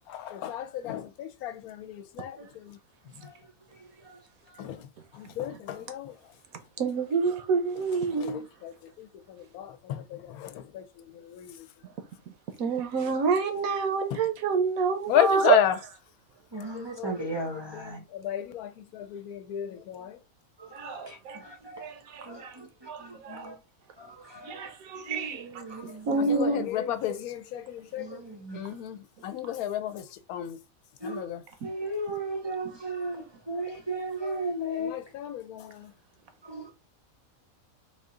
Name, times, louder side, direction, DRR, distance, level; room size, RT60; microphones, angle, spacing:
voice 1, 0.1-2.8 4.6-4.9 5.1-6.1 8.1-11.6 14.1-14.2 15.1-15.8 16.7-20.2 26.2-28.2 28.5-30.0 30.3-30.6 31.0-31.4 34.8-35.9, left 11 dB, 85° left, 1.1 m, -33 dB
voice 2, 6.8-8.4 12.6-15.6 20.7-21.4 21.8-22.5 22.9-23.0 23.2-23.5 24.5-25.4 26.1-26.6, right 5 dB, 75° right, 1.2 m, -27 dB
voice 3, 16.5-18.0 20.6-21.9 22.2-23.5 24.0-24.7 25.1-26.3 28.0-28.6 31.0-31.3 31.6-34.9 36.4-36.7, right 1 dB, 30° right, 0.5 m, -36 dB
3.8 x 2.4 x 3.7 m
omnidirectional pair, 1.5 m